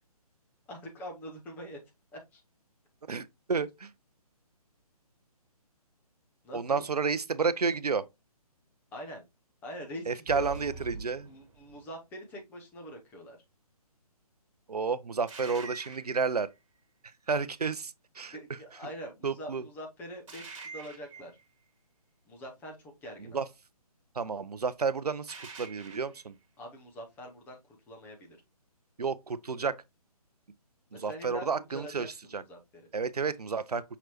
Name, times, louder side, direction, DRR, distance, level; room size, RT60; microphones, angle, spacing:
voice 1, 0.7-1.8 2.1-2.4 6.4-6.8 8.9-9.2 9.6-10.5 11.3-13.4 18.3-21.3 22.3-23.4 26.6-28.4 30.9-31.5 31.7-32.9, equal, 10° left, 0.7 m, -44 dB
voice 2, 3.1-3.9 6.5-8.0 10.1-11.3 14.7-16.5 17.3-18.4 19.2-19.6 23.3-23.5 24.2-26.3 29.0-29.8 30.9-32.4 32.9-33.8, right 5 dB, 80° right, 0.5 m, -31 dB
sound 1, 10.3-11.9 15.3-16.5 20.3-21.4 25.3-26.2, right 5 dB, 50° right, 1.5 m, -45 dB
5.8 x 3.0 x 2.9 m
figure-of-eight pair, 140°, 20 cm